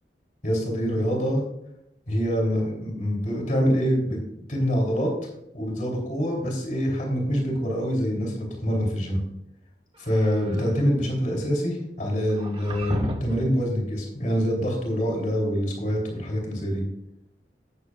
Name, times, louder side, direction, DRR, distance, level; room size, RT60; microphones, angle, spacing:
voice 1, 0.4-1.4 2.1-4.2 4.5-5.1 5.5-9.2 10.0-16.8, equal, 50° left, 0 dB, 3.0 m, -25 dB
sound 1, 9.9-10.8 12.3-13.5, equal, 30° right, 1.0 m, -33 dB
17.0 x 6.7 x 2.4 m, 0.80 s
head